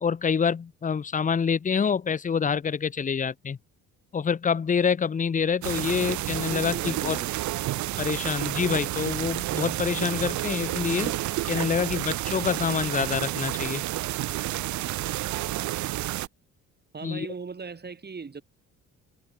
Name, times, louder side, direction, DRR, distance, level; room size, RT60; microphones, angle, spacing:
voice 1, 0.0-3.6 4.1-7.2 8.0-11.2 11.5-13.8 17.0-17.3, left 6 dB, 25° left, 0.7 m, -26 dB
sound 1, 5.6-16.3, right 16 dB, 70° right, 0.6 m, -30 dB
voice 2, 6.3-7.2 16.9-18.4, right 5 dB, 35° right, 5.4 m, -38 dB
cardioid pair, 90°, 30 cm